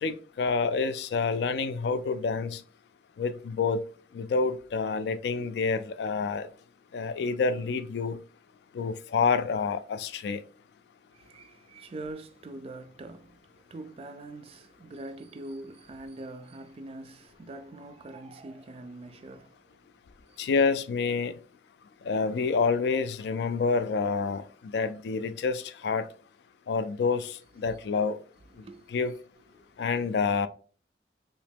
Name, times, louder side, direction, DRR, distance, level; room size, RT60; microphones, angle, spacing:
voice 1, 0.0-2.6 3.2-3.8 4.1-6.5 6.9-8.2 8.7-10.4 20.4-21.4 22.0-26.1 26.7-28.2 28.9-29.1 29.8-30.5, left 5 dB, 65° left, 0.3 m, -28 dB
voice 2, 11.1-19.8 20.3-20.5 27.6-27.8 28.5-29.0 29.6-29.8, right 2 dB, 35° right, 0.3 m, -44 dB
3.1 x 2.8 x 3.4 m
head